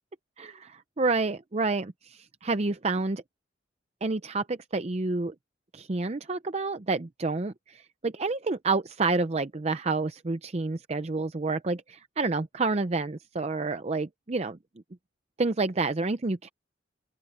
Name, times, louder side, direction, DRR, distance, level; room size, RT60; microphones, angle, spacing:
voice 1, 0.4-3.2 4.0-5.3 5.7-14.6 15.4-16.5, right 3 dB, 35° right, 0.6 m, -29 dB
open air
head